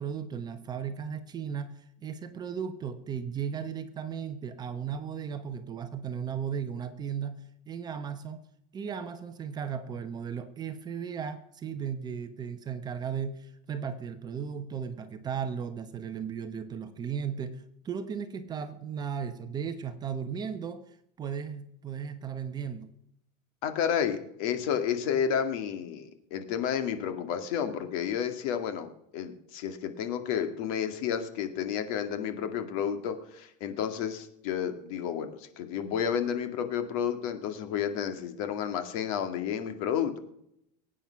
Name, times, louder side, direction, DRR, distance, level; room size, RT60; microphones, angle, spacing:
voice 1, 0.0-8.4 8.7-20.8 21.2-22.9, right 7 dB, 20° right, 9 dB, 1.0 m, -36 dB
voice 2, 23.6-40.2, left 8 dB, 60° left, 8 dB, 2.1 m, -31 dB
22.0 x 9.1 x 5.8 m, 0.76 s
supercardioid pair, 165°, 20 cm